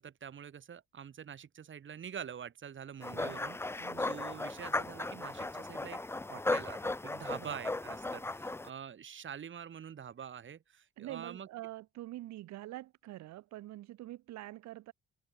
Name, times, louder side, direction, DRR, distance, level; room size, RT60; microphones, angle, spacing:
voice 1, 0.0-6.0 6.3-11.5, right 8 dB, 40° right, 1.0 m, -46 dB
sound 1, 3.0-8.7, left 2 dB, 10° left, 0.5 m, -36 dB
voice 2, 3.1-3.5 3.8-4.1 7.4-7.6 11.0-14.9, right 15 dB, 65° right, 0.5 m, -46 dB
cardioid pair, 90°, 30 cm